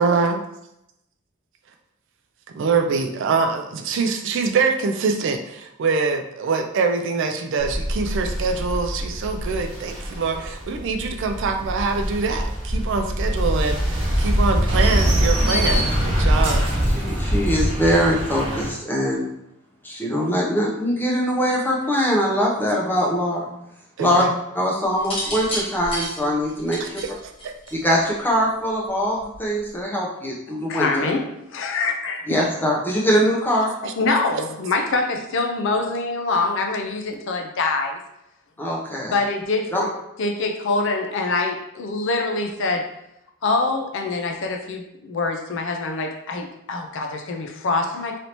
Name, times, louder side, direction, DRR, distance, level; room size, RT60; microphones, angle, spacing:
voice 1, 0.0-0.4 2.5-16.7 24.0-24.3 26.8-27.1 27.4-27.5 33.8-34.2, right 4 dB, 60° right, 5 dB, 0.4 m, -24 dB
sound 1, 7.6-18.7, equal, 25° right, 0.8 m, -23 dB
voice 2, 16.9-19.3 19.8-23.5 24.0-24.2 24.5-27.0 27.7-31.1 32.3-33.7 38.6-39.1 39.7-39.8, equal, 10° left, -3 dB, 0.7 m, -22 dB
sound 2, 25.0-28.1 29.2-29.6, equal, 25° left, 1.0 m, -30 dB
voice 3, 30.6-32.5 33.8-38.0 39.1-39.9 40.2-42.9 43.4-48.2, left 3 dB, 60° left, 3 dB, 0.5 m, -25 dB
3.2 x 2.7 x 2.9 m, 0.83 s
head